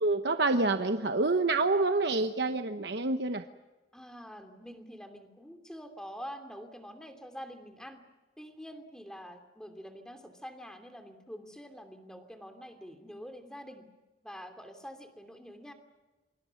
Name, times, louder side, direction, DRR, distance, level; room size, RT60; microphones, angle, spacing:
voice 1, 0.0-3.5, right 3 dB, 60° right, 7 dB, 1.0 m, -27 dB
voice 2, 3.9-8.0 8.4-13.9 14.2-15.7, equal, 5° left, 5 dB, 2.8 m, -46 dB
28.5 x 25.0 x 5.9 m, 1.2 s
head